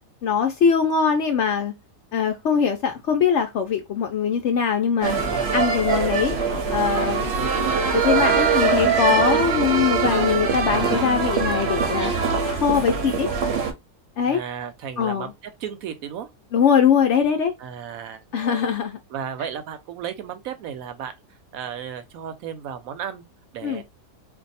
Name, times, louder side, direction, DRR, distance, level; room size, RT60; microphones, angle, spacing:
voice 1, 0.2-1.7 2.1-5.1 5.5-6.4 6.7-7.2 7.9-12.1 12.5-13.3 14.2-14.4 15.0-15.3 16.5-17.5 18.3-19.0 23.6-23.8, left 7 dB, 70° left, 0.7 m, -21 dB
sound 1, 5.0-13.7, right 5 dB, 55° right, 0.8 m, -22 dB
voice 2, 14.2-15.3 15.6-16.3 17.6-18.7 19.1-21.1 21.5-23.2 23.5-23.8, right 8 dB, 70° right, 1.0 m, -34 dB
2.6 x 2.2 x 4.0 m
omnidirectional pair, 1.7 m